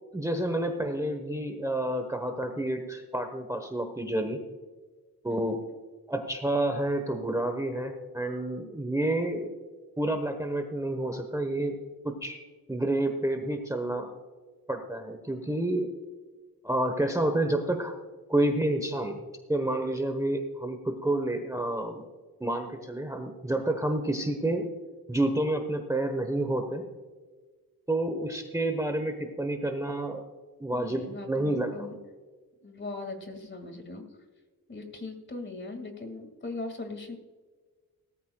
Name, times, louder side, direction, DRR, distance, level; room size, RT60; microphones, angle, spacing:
voice 1, 0.1-4.4 5.2-5.6 6.1-9.5 10.0-11.7 12.0-12.4 12.7-14.1 14.7-15.9 16.6-17.9 18.3-22.0 22.4-24.6 25.1-26.8 27.9-30.2 30.6-31.9, right 1 dB, 10° right, 5 dB, 1.1 m, -29 dB
voice 2, 30.7-31.9 32.6-34.0 34.7-37.2, left 3 dB, 30° left, 6 dB, 2.1 m, -40 dB
18.0 x 13.5 x 2.3 m, 1.4 s
wide cardioid pair, 125°, 36 cm